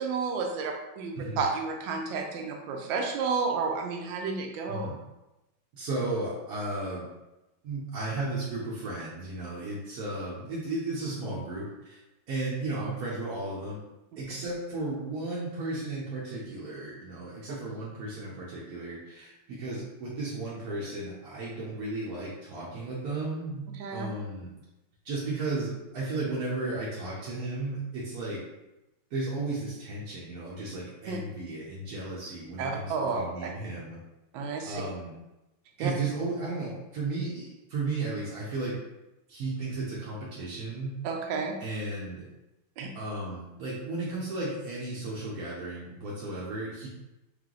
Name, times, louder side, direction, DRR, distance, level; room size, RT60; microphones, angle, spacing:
voice 1, 0.0-4.9 23.8-24.1 31.1-31.2 32.6-33.5 34.3-34.8 35.8-35.9 41.0-41.6 42.8-42.9, right 4 dB, 80° right, 2 dB, 1.3 m, -31 dB
voice 2, 5.7-7.1 7.6-12.0 12.3-13.8 14.2-24.5 25.0-28.4 29.1-34.0 34.6-35.1 35.8-38.8 39.3-40.9 41.6-42.2 42.9-46.9, right 2 dB, 60° right, -6 dB, 1.1 m, -34 dB
3.4 x 3.1 x 3.7 m, 0.97 s
omnidirectional pair, 2.1 m